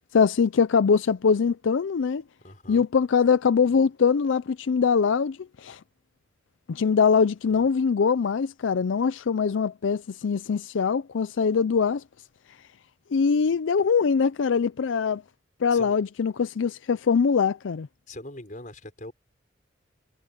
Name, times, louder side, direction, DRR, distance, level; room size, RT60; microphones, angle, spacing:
voice 1, 0.1-2.2 2.7-5.8 6.7-12.0 13.1-15.2 15.6-17.9, left 6 dB, 90° left, 0.4 m, -22 dB
voice 2, 2.4-2.9 7.5-7.7 15.7-15.9 18.1-19.1, left 1 dB, 45° left, 5.5 m, -42 dB
head